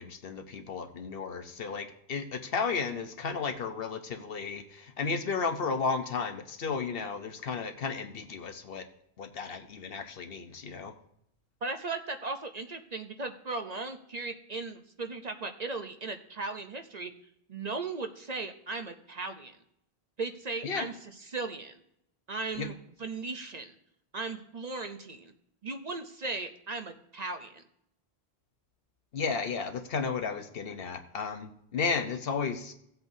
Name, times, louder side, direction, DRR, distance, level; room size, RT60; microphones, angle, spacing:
voice 1, 0.0-8.9 9.2-10.9 20.6-20.9 22.6-22.7 29.1-32.7, left 5 dB, 65° left, 8 dB, 1.0 m, -33 dB
voice 2, 11.6-17.1 17.5-19.6 20.2-20.9 21.2-21.8 22.3-22.7 23.0-23.7 24.1-25.3 25.6-27.6, right 3 dB, 45° right, 6 dB, 0.7 m, -37 dB
17.0 x 7.9 x 2.7 m, 0.76 s
omnidirectional pair, 1.1 m